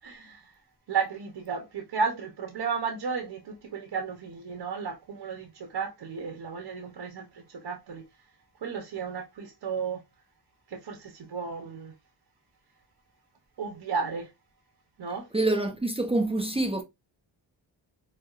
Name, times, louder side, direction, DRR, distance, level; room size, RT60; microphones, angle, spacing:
voice 1, 0.0-0.5 0.9-8.1 8.6-10.0 10.7-11.9 13.6-14.3 15.0-15.3, right 5 dB, 60° right, 0.9 m, -33 dB
voice 2, 15.3-16.8, right 2 dB, 15° right, 0.5 m, -26 dB
4.6 x 2.1 x 2.4 m
cardioid pair, 70°, 47 cm